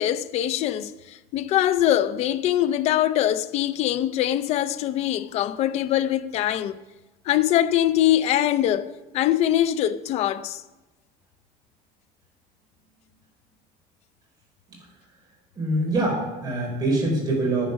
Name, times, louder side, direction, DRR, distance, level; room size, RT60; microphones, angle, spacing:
voice 1, 0.0-6.8 7.3-10.6, left 12 dB, 45° left, 0.5 m, -23 dB
voice 2, 15.5-17.7, right 2 dB, 25° right, 4.3 m, -24 dB
10.5 x 10.0 x 6.0 m
cardioid pair, 175°, 15 cm